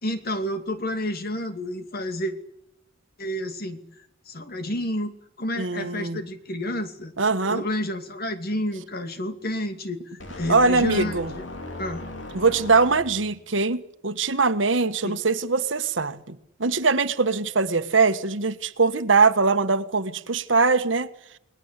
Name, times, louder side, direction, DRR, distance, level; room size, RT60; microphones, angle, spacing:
voice 1, 0.0-2.3 3.2-3.8 4.3-5.1 5.4-7.1 7.5-11.4 11.8-12.1 15.0-15.2, left 1 dB, 55° left, 2.6 m, -30 dB
voice 2, 5.6-6.2 7.2-7.6 10.5-11.3 12.3-21.1, right 4 dB, 80° right, 1.5 m, -22 dB
sound 1, 10.2-13.4, left 1 dB, 70° left, 3.3 m, -38 dB
30.0 x 20.0 x 8.3 m
head